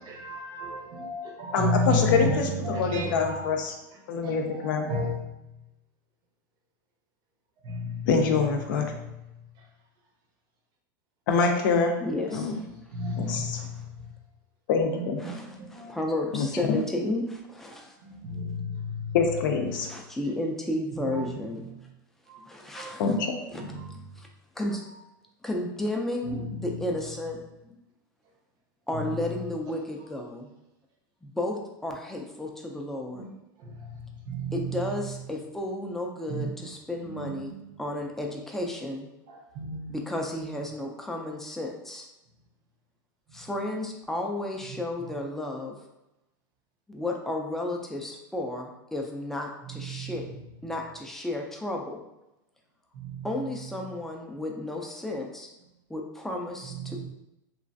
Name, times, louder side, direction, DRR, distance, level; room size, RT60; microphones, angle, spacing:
voice 1, 0.1-3.5 4.2-5.2 7.6-8.1 12.9-13.8 14.9-15.9 17.7-19.2 21.1-21.2 22.3-22.4 22.8-22.9 23.6-23.9 26.3-26.5 33.1-33.3 34.3-34.6 36.3-36.5 37.1-37.3 39.3-40.0 49.9-50.1 53.0-53.3 56.9-57.1, left 1 dB, 40° right, 1 dB, 0.6 m, -32 dB
voice 2, 1.5-3.7 4.1-4.9 8.1-8.9 11.3-11.9 12.3-12.6 13.2-13.6 14.7-15.2 16.3-16.8 19.1-19.9 23.0-23.3, left 5 dB, 75° left, 3 dB, 0.5 m, -25 dB
voice 3, 12.0-12.6 13.3-13.7 15.2-17.9 19.8-21.6 22.5-23.0 23.5-23.6 24.2-24.3 24.6-24.8 25.4-27.4 28.9-30.5 31.2-33.2 34.5-39.1 39.9-42.1 43.3-45.8 46.9-50.2 50.6-52.0 53.2-55.5 55.9-57.1, left 1 dB, 5° left, 0 dB, 0.4 m, -33 dB
3.1 x 2.4 x 2.6 m, 0.91 s
supercardioid pair, 140°, 11 cm